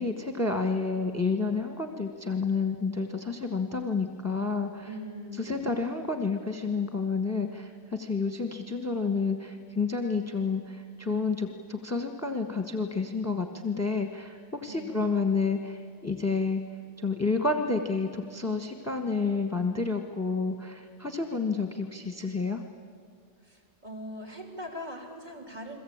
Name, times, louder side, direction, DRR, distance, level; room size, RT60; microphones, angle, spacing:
voice 1, 0.0-4.9 5.4-16.6 17.0-22.6, left 4 dB, 15° left, 5 dB, 1.3 m, -30 dB
voice 2, 4.8-5.8 14.7-15.1 21.3-21.6 23.4-25.8, equal, 40° right, 1 dB, 4.3 m, -41 dB
30.0 x 22.0 x 8.7 m, 2.1 s
omnidirectional pair, 1.1 m